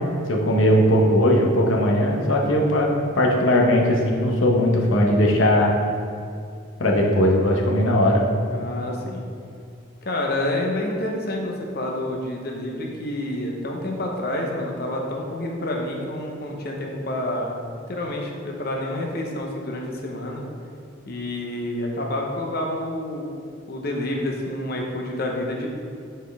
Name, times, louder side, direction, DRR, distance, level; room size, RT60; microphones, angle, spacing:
voice 1, 0.3-5.7 6.8-8.2, left 1 dB, 80° left, -1 dB, 0.9 m, -19 dB
voice 2, 8.5-9.2 10.0-20.4 21.1-23.3 23.7-25.7, left 1 dB, 50° left, 0 dB, 0.8 m, -28 dB
7.2 x 4.4 x 3.4 m, 2.3 s
head